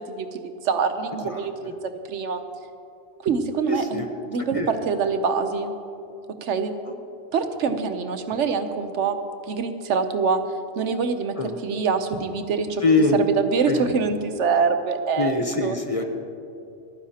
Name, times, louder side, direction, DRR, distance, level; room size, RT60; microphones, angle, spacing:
voice 1, 0.0-2.4 3.2-5.7 6.4-6.7 7.3-9.2 9.5-10.4 10.8-11.3 11.6-12.8 13.4-15.3 15.6-15.8, right 5 dB, 90° right, 8 dB, 1.1 m, -25 dB
voice 2, 1.1-1.5 3.7-4.1 4.5-4.7 6.9-7.0 11.4-11.6 12.8-13.2 13.7-13.9 15.2-16.0, left 3 dB, 35° left, 4 dB, 0.8 m, -23 dB
26.5 x 9.8 x 2.9 m, 2.6 s
omnidirectional pair, 1.2 m